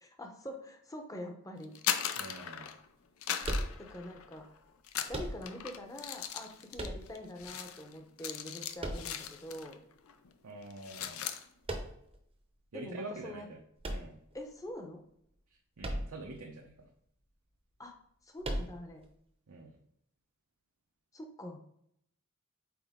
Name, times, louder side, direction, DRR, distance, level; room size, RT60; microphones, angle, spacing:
voice 1, 0.0-1.7 3.8-4.4 5.1-9.8 12.7-13.5 14.3-15.0 17.8-17.9 18.2-19.0 21.1-21.6, left 1 dB, 15° left, 3 dB, 0.8 m, -45 dB
sound 1, 1.6-2.9 3.2-4.5 4.8-9.8 10.1-10.3 10.6-11.4, left 9 dB, 75° left, 0.5 m, -38 dB
voice 2, 2.2-2.7 10.4-11.2 12.7-13.6 13.9-14.2 15.8-16.9 19.5-19.8, right 2 dB, 85° right, 0 dB, 0.8 m, -45 dB
sound 2, 3.4-4.2 5.1-5.8 6.7-7.5 8.8-9.6 11.6-12.2 13.8-14.7 15.8-16.4 16.6-16.7 18.4-19.1, right 1 dB, 25° right, 0.7 m, -37 dB
6.0 x 4.4 x 3.6 m, 0.71 s
head